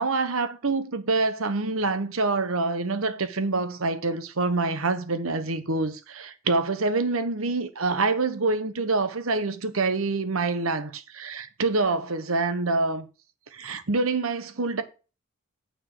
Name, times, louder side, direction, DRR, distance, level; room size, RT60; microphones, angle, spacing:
voice 1, 0.0-13.0 13.5-14.8, right 3 dB, 80° right, 1.1 m, -26 dB
9.0 x 4.7 x 6.6 m
head